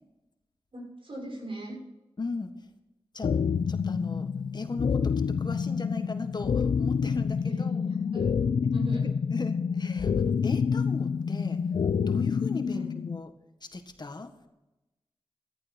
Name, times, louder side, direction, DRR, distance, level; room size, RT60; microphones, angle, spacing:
voice 1, 0.7-1.8 7.4-8.3 8.7-9.0 12.7-12.9, right 1 dB, 65° right, -1 dB, 6.2 m, -40 dB
voice 2, 2.2-2.5 3.1-3.3 3.7-7.9 9.0-11.6 12.1-13.3 13.6-14.3, left 3 dB, 50° left, 7 dB, 1.6 m, -38 dB
sound 1, 3.2-13.2, left 6 dB, 75° left, 0.5 m, -27 dB
14.0 x 13.0 x 4.4 m, 0.99 s
cardioid pair, 60°, 10 cm